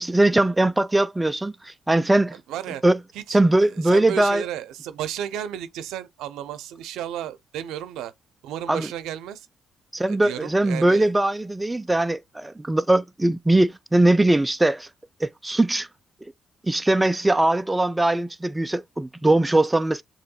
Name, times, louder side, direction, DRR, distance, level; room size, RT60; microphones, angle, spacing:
voice 1, 0.0-2.4 2.8-3.0 3.3-4.4 8.7-8.9 9.9-14.9 15.2-15.9 16.6-20.0, right 1 dB, 10° right, 0.3 m, -21 dB
voice 2, 2.5-2.8 3.1-8.1 8.4-9.5 10.0-11.1, right 10 dB, 90° right, 0.6 m, -33 dB
6.9 x 3.0 x 2.2 m
cardioid pair, 90°, 0 cm